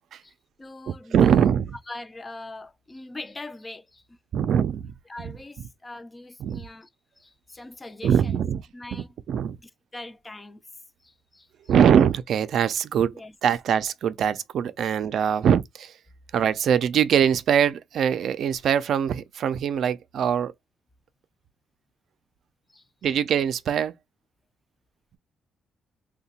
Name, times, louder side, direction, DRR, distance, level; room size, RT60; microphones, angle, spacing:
voice 1, 0.6-1.5 1.9-4.2 5.1-6.9 7.2-8.4 8.7-9.1 9.6-10.6 11.0-11.7 13.1-13.3 22.7-22.8, left 2 dB, 20° left, 0.4 m, -42 dB
voice 2, 1.1-1.7 4.3-4.9 5.2-5.3 6.4-6.6 8.0-8.6 8.9-9.6 11.7-13.2 13.4-16.0 16.3-20.5 23.0-23.9, right 8 dB, 65° right, 0.4 m, -22 dB
2.7 x 2.2 x 4.1 m
cardioid pair, 90°, 0 cm